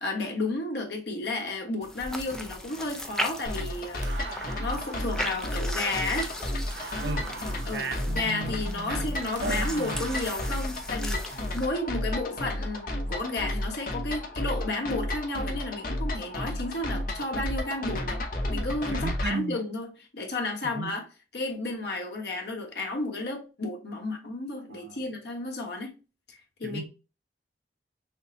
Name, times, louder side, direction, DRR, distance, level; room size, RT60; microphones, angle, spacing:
voice 1, 0.0-4.0 4.6-6.3 7.7-18.2 18.5-19.9 20.1-21.1 21.3-25.9 26.3-26.9, left 2 dB, 65° left, 1.2 m, -32 dB
sound 1, 1.8-11.7, left 1 dB, 5° left, 0.4 m, -38 dB
sound 2, 2.7-10.7, right 4 dB, 80° right, 0.9 m, -45 dB
sound 3, 3.4-19.3, left 1 dB, 50° left, 0.9 m, -32 dB
voice 2, 7.0-7.3 7.6-9.1 9.4-10.0 18.9-19.6 20.7-20.9 24.7-25.0 26.6-26.9, right 3 dB, 65° right, 0.6 m, -35 dB
6.3 x 2.1 x 2.6 m
head